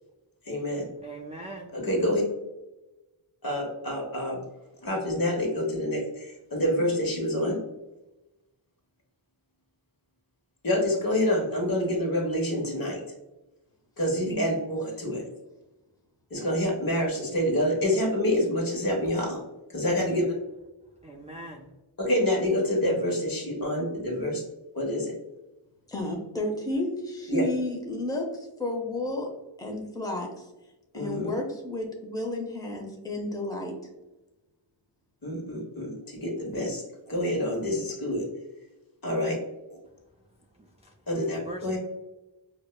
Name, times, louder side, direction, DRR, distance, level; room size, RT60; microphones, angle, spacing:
voice 1, 0.5-0.8 1.7-2.2 3.4-4.4 4.8-7.6 10.6-13.0 14.0-15.2 16.3-19.4 19.7-20.2 22.0-24.4 24.7-25.1 27.3-27.4 30.9-31.3 35.2-38.2 39.0-39.4 41.1-41.8, left 1 dB, 45° left, 0 dB, 1.1 m, -27 dB
voice 2, 1.0-1.7 21.0-21.7 41.3-41.8, right 1 dB, 15° right, 1 dB, 0.3 m, -40 dB
voice 3, 25.9-28.3 28.6-29.3 29.6-30.3 30.9-33.7, left 1 dB, 10° left, 1 dB, 0.7 m, -31 dB
4.6 x 2.1 x 2.2 m, 1.0 s
cardioid pair, 45°, 49 cm